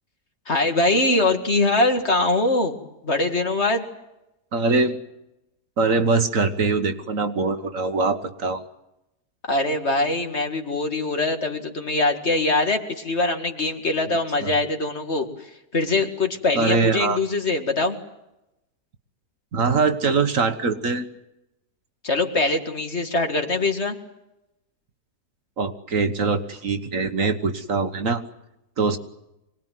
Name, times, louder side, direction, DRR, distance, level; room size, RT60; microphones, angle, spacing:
voice 1, 0.5-2.8 3.0-3.8 9.5-18.0 22.0-24.0, left 2 dB, 45° left, 5 dB, 2.3 m, -23 dB
voice 2, 4.5-5.0 5.8-8.6 14.4-14.5 16.5-17.2 19.5-21.1 25.6-28.2 28.8-29.0, right 4 dB, 55° right, 8 dB, 1.7 m, -22 dB
25.0 x 19.5 x 9.3 m, 0.90 s
omnidirectional pair, 1.7 m